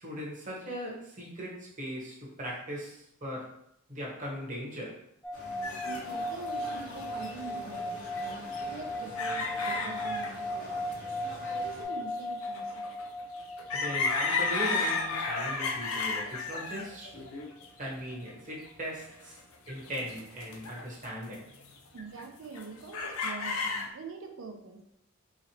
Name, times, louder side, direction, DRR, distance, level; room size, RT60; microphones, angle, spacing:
voice 1, 0.0-3.6 3.9-5.0 13.7-17.2 17.8-19.4 19.7-21.5, equal, 35° right, -4 dB, 1.0 m, -39 dB
sound 1, 5.2-16.6, left 1 dB, 5° left, 0.4 m, -37 dB
sound 2, 5.3-11.8, left 1 dB, 40° left, 1.0 m, -45 dB
sound 3, 5.6-7.4 7.7-10.4 10.9-11.0 11.5-18.5 19.1-19.4 19.7-21.1 21.3-22.2 22.5-23.9, left 4 dB, 80° left, 0.5 m, -34 dB
voice 2, 5.8-8.3 8.6-11.0 11.4-12.9 21.9-24.8, right 4 dB, 65° right, 4 dB, 0.5 m, -44 dB
4.1 x 2.9 x 2.8 m, 0.75 s
head